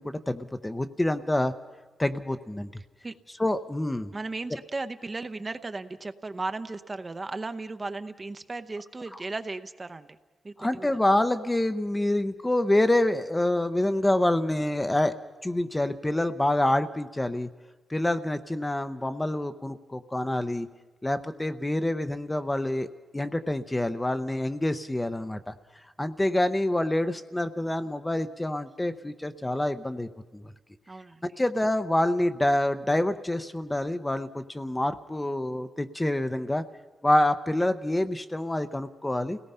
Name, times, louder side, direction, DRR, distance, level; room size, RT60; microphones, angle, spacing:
voice 1, 0.0-1.5 2.0-2.7 3.4-4.1 10.6-15.2 15.4-17.5 17.9-20.7 21.0-22.9 23.1-25.5 26.0-30.5 31.4-36.6 37.0-39.4, left 1 dB, 15° left, 10 dB, 0.7 m, -27 dB
voice 2, 4.1-10.1 10.4-10.9 30.9-31.2, right 3 dB, 25° right, 10 dB, 0.7 m, -36 dB
29.0 x 18.0 x 5.6 m, 1.3 s
wide cardioid pair, 115°, 0 cm